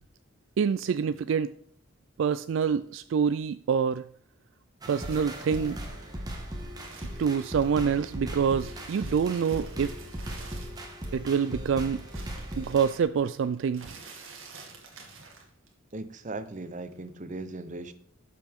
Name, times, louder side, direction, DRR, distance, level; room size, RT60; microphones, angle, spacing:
voice 1, 0.6-1.5 2.2-4.0 4.9-5.8 7.2-9.9 11.1-12.0 12.6-13.9, right 6 dB, 70° right, 14 dB, 0.3 m, -26 dB
sound 1, 4.8-13.0, equal, 20° right, 1.5 m, -38 dB
sound 2, 5.1-8.1 8.4-11.3 11.6-15.9 16.2-17.1, right 4 dB, 90° right, 2.2 m, -49 dB
voice 2, 15.9-17.9, right 2 dB, 40° right, 12 dB, 0.8 m, -38 dB
12.5 x 7.5 x 3.6 m, 0.63 s
head